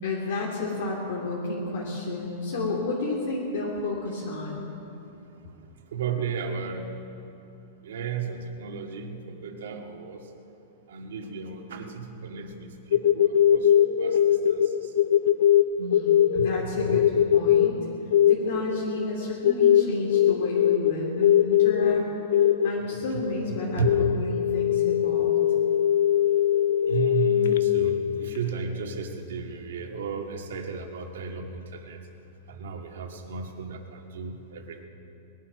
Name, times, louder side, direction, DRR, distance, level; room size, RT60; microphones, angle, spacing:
voice 1, 0.0-4.6 15.8-17.8 18.3-22.0 22.3-23.8 24.2-25.3, left 2 dB, 60° left, -3 dB, 2.8 m, -31 dB
voice 2, 5.9-6.9 7.8-10.2 10.9-13.7 14.0-14.9 16.4-17.0 23.5-23.9 26.9-32.0 32.5-34.9, right 5 dB, 80° right, 3 dB, 1.9 m, -34 dB
sound 1, 12.9-28.6, left 10 dB, 85° left, 0.6 m, -22 dB
20.5 x 11.5 x 6.1 m, 2.8 s
supercardioid pair, 175°, 0 cm